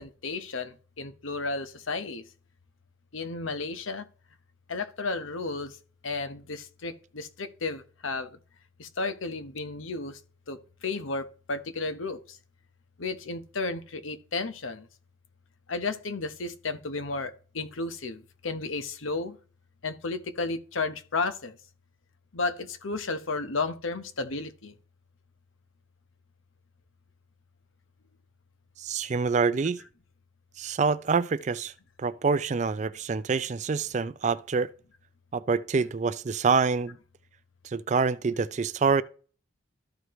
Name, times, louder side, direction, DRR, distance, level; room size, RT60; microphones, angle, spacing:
voice 1, 0.0-2.2 3.1-4.0 4.7-5.7 6.0-8.3 8.8-10.2 10.5-10.6 10.8-12.2 13.0-14.9 15.7-19.4 19.8-21.5 22.3-24.7, left 3 dB, 85° left, 1.0 m, -33 dB
voice 2, 28.8-29.8 30.6-31.7 32.0-34.7 35.3-37.0 37.6-39.0, right 5 dB, 35° right, 0.4 m, -26 dB
13.5 x 4.7 x 3.1 m
head